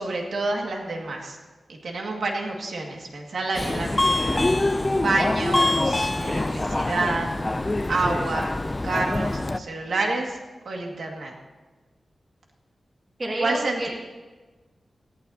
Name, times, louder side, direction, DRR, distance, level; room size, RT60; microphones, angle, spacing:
voice 1, 0.0-1.4 1.7-4.4 5.0-7.3 7.9-8.5 8.8-10.4 10.7-11.3 13.4-13.9, right 2 dB, 70° right, 1 dB, 2.0 m, -28 dB
Subway metro underground, 3.5-9.6, left 2 dB, 20° left, 0.3 m, -24 dB
voice 2, 13.2-13.9, right 1 dB, 30° right, -3 dB, 2.6 m, -29 dB
18.0 x 15.0 x 2.8 m, 1.3 s
wide cardioid pair, 175°, 0 cm